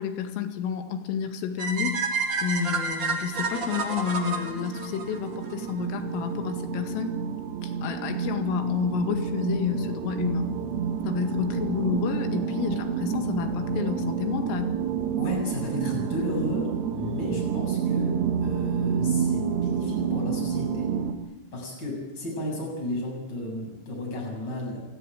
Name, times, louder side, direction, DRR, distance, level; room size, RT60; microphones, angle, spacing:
voice 1, 0.0-2.0 2.4-7.2 7.6-10.5 11.1-14.7, left 7 dB, 80° left, 6 dB, 4.6 m, -30 dB
sound 1, 1.6-5.7, right 4 dB, 40° right, 1.7 m, -30 dB
sound 2, 3.4-21.1, right 7 dB, 65° right, 3.4 m, -29 dB
voice 2, 15.2-20.9 21.5-24.8, left 1 dB, 20° left, -1 dB, 7.6 m, -33 dB
28.0 x 15.5 x 9.0 m, 1.0 s
omnidirectional pair, 5.8 m